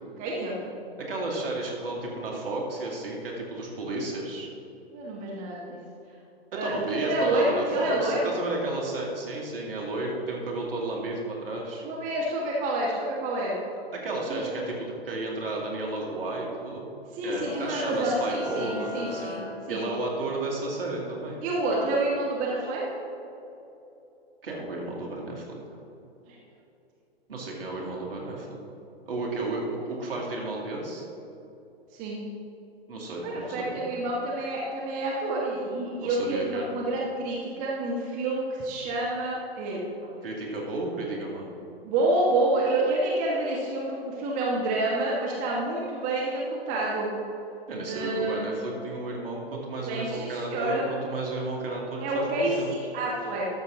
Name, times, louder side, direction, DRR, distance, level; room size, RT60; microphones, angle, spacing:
voice 1, 0.2-0.6 4.9-5.8 6.5-6.7 7.0-8.3 11.8-13.5 14.3-14.6 17.1-19.4 19.7-19.8 21.4-22.8 26.3-26.4 29.4-29.5 31.9-32.2 33.2-39.8 41.8-47.1 47.8-48.5 49.9-50.9 52.0-53.5, right 2 dB, 25° right, -4 dB, 1.4 m, -28 dB
voice 2, 1.0-4.5 6.6-11.8 13.9-16.9 17.2-19.3 19.7-21.4 24.4-25.6 27.3-28.6 29.1-31.0 32.9-33.9 36.0-36.7 40.2-41.5 47.7-52.7, right 2 dB, 60° right, -1 dB, 2.3 m, -33 dB
sound 1, 17.4-20.4, left 3 dB, 85° left, 1.1 m, -38 dB
13.0 x 6.7 x 3.7 m, 2.9 s
figure-of-eight pair, 115°, 32 cm